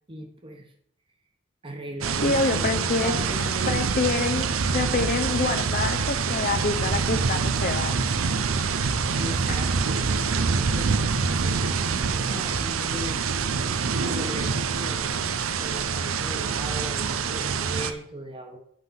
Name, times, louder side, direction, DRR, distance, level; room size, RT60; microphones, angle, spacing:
voice 1, 0.1-0.6 1.6-4.2 9.2-13.2 14.1-15.2 15.6-18.6, right 1 dB, 25° right, 4 dB, 1.2 m, -37 dB
sound 1, 2.0-17.9, right 5 dB, 90° right, 0.6 m, -26 dB
voice 2, 2.2-3.1 3.7-8.0, left 3 dB, 40° left, 8 dB, 0.6 m, -26 dB
8.1 x 5.7 x 5.5 m, 0.70 s
head